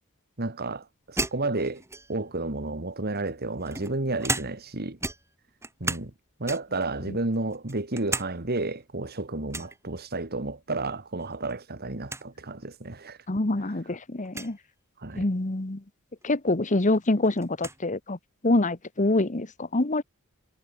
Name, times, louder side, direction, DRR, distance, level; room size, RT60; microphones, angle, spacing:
voice 1, 0.4-1.8 2.1-5.0 5.8-6.1 6.4-13.2 15.0-15.2, right 2 dB, 45° right, 2.0 m, -31 dB
sound 1, 1.2-2.3 3.1-4.8 5.0-6.1 6.5-6.9 7.3-8.3 8.6-8.7 9.5-9.8 11.2-11.5 11.8-11.9 12.1-12.3 13.1-13.2 14.3-14.5 16.2-16.3 16.6-17.8, right 2 dB, 15° right, 6.8 m, -34 dB
voice 2, 13.3-14.6 15.1-15.8 16.2-18.2 18.4-20.0, left 2 dB, 35° left, 1.2 m, -25 dB
head